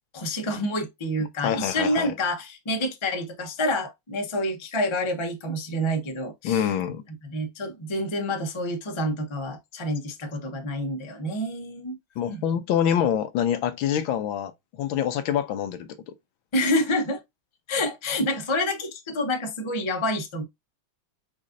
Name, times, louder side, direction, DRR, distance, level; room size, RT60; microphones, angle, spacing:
voice 1, 0.1-6.7 7.2-12.0 12.3-12.4 16.5-17.2 17.7-20.4, left 1 dB, 35° left, 0.4 m, -28 dB
voice 2, 1.4-2.1 6.4-7.0 12.2-14.5 14.8-16.1, left 9 dB, 80° left, 1.4 m, -26 dB
5.3 x 3.7 x 2.5 m
omnidirectional pair, 2.3 m